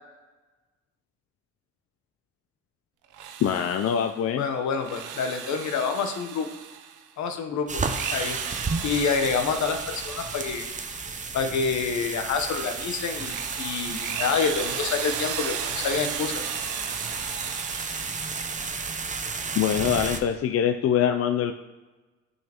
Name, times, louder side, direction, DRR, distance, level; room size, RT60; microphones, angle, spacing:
Drill, 3.0-4.2 4.7-7.1 7.7-11.4 11.9-19.3, right 8 dB, 80° right, 0.7 m, -36 dB
voice 1, 3.4-4.5 19.6-21.5, left 9 dB, 50° left, 7 dB, 0.4 m, -24 dB
voice 2, 4.4-6.5 7.2-7.8 8.1-8.4 8.8-10.7 11.3-16.4, left 5 dB, 70° left, 6 dB, 0.9 m, -27 dB
sound 1, 7.7-20.2, right 4 dB, 25° right, 0.7 m, -33 dB
9.0 x 5.5 x 2.9 m, 1.2 s
cardioid pair, 90°, 30 cm